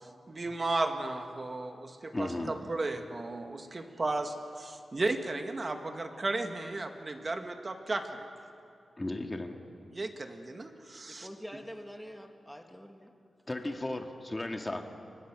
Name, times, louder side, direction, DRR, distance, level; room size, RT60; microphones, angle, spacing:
voice 1, 0.3-8.3 9.9-11.3, right 2 dB, 30° right, 5 dB, 1.9 m, -34 dB
voice 2, 2.1-2.6 9.0-9.6 13.5-14.8, left 2 dB, 20° left, 4 dB, 1.9 m, -35 dB
voice 3, 11.0-13.1, equal, ahead, 4 dB, 2.0 m, -46 dB
29.5 x 24.5 x 6.3 m, 2.5 s
wide cardioid pair, 140°, 0 cm